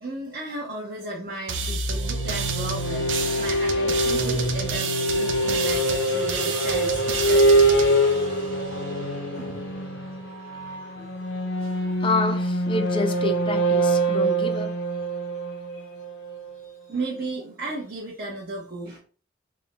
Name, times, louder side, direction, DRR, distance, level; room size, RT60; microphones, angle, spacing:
voice 1, 0.0-7.5 9.3-9.7 11.0-11.1 11.6-11.7 15.7-15.9 16.6-19.0, right 2 dB, 50° right, 0.9 m, -35 dB
sound 1, 1.5-9.0, right 5 dB, 75° right, 0.5 m, -31 dB
sound 2, 1.9-16.5, right 1 dB, 75° left, 0.8 m, -24 dB
voice 2, 12.0-14.7, left 2 dB, 30° left, 0.5 m, -28 dB
3.5 x 2.2 x 4.1 m
head